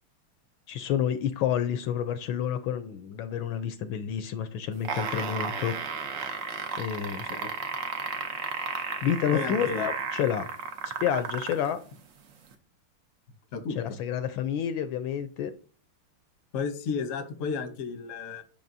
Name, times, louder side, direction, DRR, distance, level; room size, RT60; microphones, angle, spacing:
voice 1, 0.7-5.8 6.8-7.3 9.0-10.5 10.8-11.8 13.8-15.5, left 9 dB, 75° left, 11 dB, 1.3 m, -29 dB
sound 1, 4.7-11.7 12.5-12.6, right 5 dB, 60° right, 0.8 m, -33 dB
voice 2, 9.3-9.9 13.5-14.0 16.5-18.4, left 5 dB, 55° left, 7 dB, 0.9 m, -33 dB
8.5 x 6.1 x 2.7 m, 0.40 s
omnidirectional pair, 2.4 m